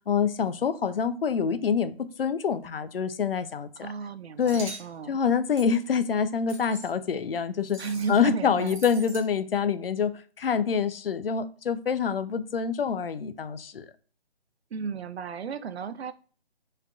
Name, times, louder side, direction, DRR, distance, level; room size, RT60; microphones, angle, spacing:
voice 1, 0.1-3.9 4.4-4.7 5.1-7.8 8.1-13.9, left 6 dB, 60° left, 12 dB, 0.5 m, -26 dB
voice 2, 3.8-5.2 7.8-8.8 14.7-16.1, right 6 dB, 80° right, 13 dB, 0.5 m, -34 dB
sound 1, 4.4-4.9 5.6-5.8 6.5-6.9 7.7-8.3 8.6-9.3, right 2 dB, 45° right, 1.2 m, -42 dB
3.7 x 3.2 x 2.3 m, 0.41 s
figure-of-eight pair, 160°, 32 cm